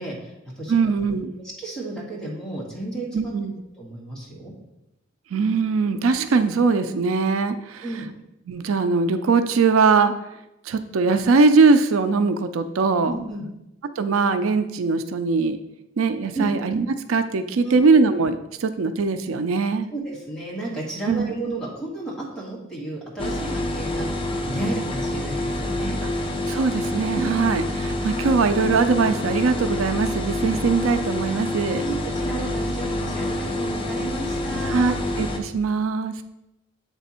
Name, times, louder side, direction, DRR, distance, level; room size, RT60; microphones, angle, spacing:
voice 1, 0.0-0.8 1.6-3.3 3.8-4.5 5.8-6.0 7.8-8.1 13.0-13.5 16.3-16.5 17.6-17.8 19.9-26.0 27.1-27.3 31.8-35.0, right 2 dB, 5° left, -5 dB, 1.7 m, -32 dB
voice 2, 0.7-1.4 3.1-3.5 5.3-7.8 8.5-10.1 10.7-13.1 14.0-15.6 16.0-19.9 21.1-21.3 26.5-31.8 34.7-36.2, right 4 dB, 90° right, 10 dB, 0.4 m, -21 dB
sound 1, 23.2-35.4, left 1 dB, 25° left, 0.6 m, -27 dB
8.2 x 3.4 x 4.2 m, 0.90 s
head